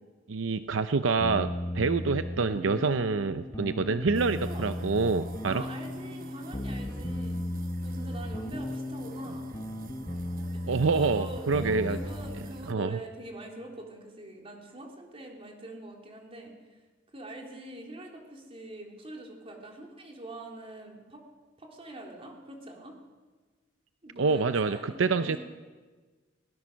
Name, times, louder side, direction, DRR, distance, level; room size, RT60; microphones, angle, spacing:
voice 1, 0.3-5.6 10.7-12.0 12.7-13.0 24.2-25.4, right 4 dB, 85° right, 11 dB, 0.6 m, -27 dB
sound 1, 1.2-12.5, left 1 dB, 20° left, 1.1 m, -36 dB
sound 2, 4.1-12.7, right 3 dB, 45° right, 1.0 m, -49 dB
voice 2, 5.5-9.6 10.5-10.6 10.9-16.5 17.1-21.2 21.6-22.9 24.0-25.4, right 1 dB, 30° right, 0 dB, 3.7 m, -44 dB
21.5 x 19.0 x 6.3 m, 1.4 s
head